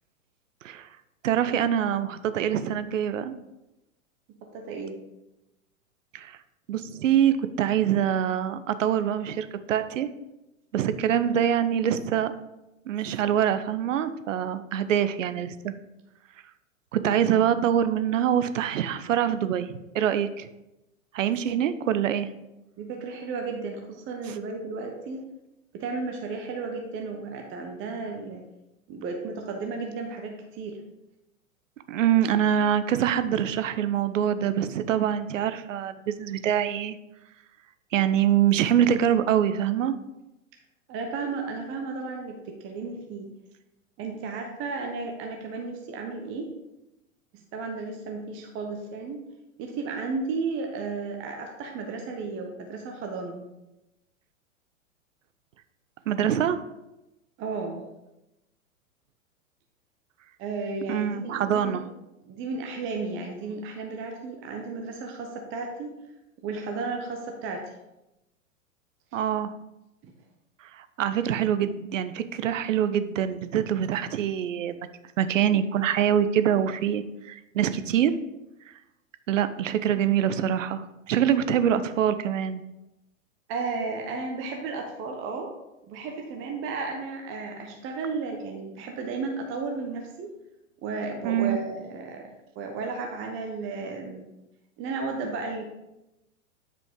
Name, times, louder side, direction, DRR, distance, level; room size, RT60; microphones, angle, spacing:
voice 1, 1.2-3.3 6.1-6.4 6.7-10.1 10.7-12.3 12.9-15.7 16.9-20.5 21.1-22.3 24.3-24.4 31.9-37.0 37.9-39.9 56.1-56.6 60.9-61.9 69.1-69.5 70.7-74.9 75.2-78.1 79.3-82.6 91.2-91.6, right 9 dB, 65° right, 12 dB, 0.7 m, -25 dB
voice 2, 4.4-5.0 21.3-21.4 22.8-25.2 25.7-28.4 28.9-30.8 40.9-43.3 44.0-46.5 47.3-49.2 49.6-53.4 57.4-57.9 60.4-61.8 62.3-65.9 66.4-67.7 70.0-70.1 83.5-85.5 85.9-90.3 90.8-94.3 94.8-95.6, right 4 dB, 30° right, 2 dB, 1.0 m, -34 dB
9.1 x 5.2 x 3.7 m, 0.94 s
hypercardioid pair, 110°, 41 cm